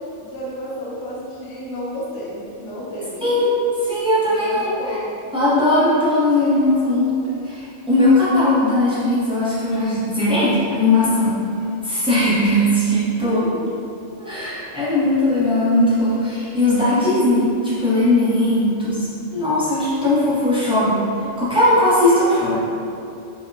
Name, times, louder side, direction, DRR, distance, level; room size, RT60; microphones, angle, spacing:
voice 1, 0.0-3.5 4.2-5.2 13.1-13.7 14.3-14.4 22.1-22.3, equal, 85° left, -7 dB, 0.9 m, -32 dB
voice 2, 3.2-3.6 3.9-4.7 5.3-7.1 7.4-11.4 11.8-13.4 14.2-21.0 21.4-22.6, left 1 dB, 5° right, -12 dB, 0.5 m, -18 dB
3.4 x 2.0 x 2.6 m, 2.7 s
omnidirectional pair, 1.2 m